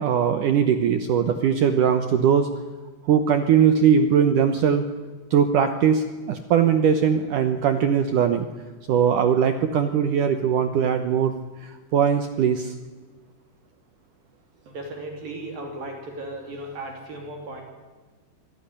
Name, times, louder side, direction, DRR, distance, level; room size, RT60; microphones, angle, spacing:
voice 1, 0.0-2.5 3.1-4.8 5.3-8.5 8.9-11.3 11.6-12.7, right 7 dB, 75° right, 9 dB, 1.9 m, -20 dB
voice 2, 14.7-17.6, right 1 dB, 55° right, 3 dB, 4.6 m, -36 dB
25.5 x 17.5 x 10.0 m, 1.3 s
omnidirectional pair, 5.2 m